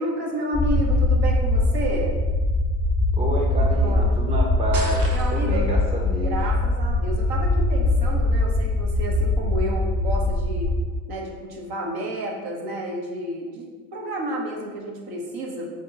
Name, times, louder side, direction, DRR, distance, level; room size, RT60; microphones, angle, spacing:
voice 1, 0.0-2.2 3.6-4.1 5.1-5.6 6.2-10.7 11.1-15.7, right 1 dB, 55° right, -1 dB, 1.1 m, -31 dB
sound 1, 0.5-10.8, left 2 dB, 10° left, 1.0 m, -22 dB
voice 2, 3.1-6.5, right 1 dB, 15° right, -2 dB, 0.7 m, -29 dB
sound 2, 4.7-5.7, right 2 dB, 80° right, 1.0 m, -34 dB
3.5 x 3.0 x 4.6 m, 1.4 s
hypercardioid pair, 85°, 45 cm